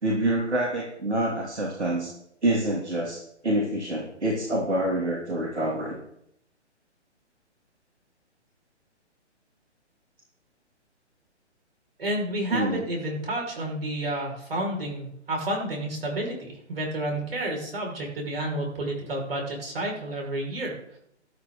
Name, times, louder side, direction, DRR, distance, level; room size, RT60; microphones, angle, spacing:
voice 1, 0.0-2.1 2.4-6.0 12.5-12.9, right 1 dB, 70° right, -1 dB, 3.1 m, -26 dB
voice 2, 12.0-21.0, right 1 dB, 55° right, 1 dB, 6.0 m, -30 dB
14.5 x 12.5 x 4.1 m, 0.74 s
figure-of-eight pair, 130°, 35 cm